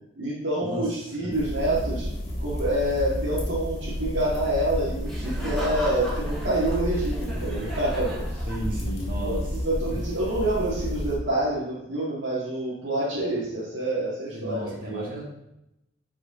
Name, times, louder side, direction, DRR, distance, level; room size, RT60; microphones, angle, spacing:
voice 1, 0.2-2.1 2.4-8.5 9.2-15.1, right 1 dB, 85° right, -8 dB, 2.0 m, -27 dB
sound 1, 1.3-11.2, equal, 35° left, 1.8 m, -31 dB
Laughter, 5.0-9.0, equal, ahead, 2.2 m, -38 dB
voice 2, 8.4-9.4 14.3-15.2, right 1 dB, 50° right, -3 dB, 2.3 m, -33 dB
9.4 x 4.9 x 3.7 m, 0.87 s
head